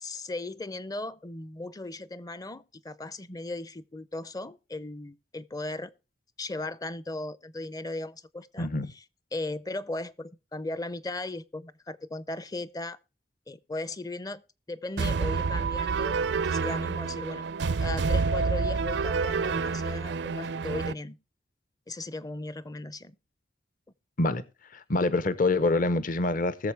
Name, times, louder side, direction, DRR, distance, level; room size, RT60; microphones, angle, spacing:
voice 1, 0.0-5.9 6.4-8.7 8.9-9.0 9.3-13.0 13.5-14.4 14.7-17.5 17.8-21.2 21.9-23.2, left 2 dB, 20° left, 0.5 m, -37 dB
voice 2, 8.6-8.9 24.2-24.4 24.7-26.7, left 2 dB, 50° left, 0.8 m, -26 dB
sound 1, 15.0-20.9, right 4 dB, 70° right, 0.4 m, -28 dB
20.5 x 7.0 x 3.3 m
head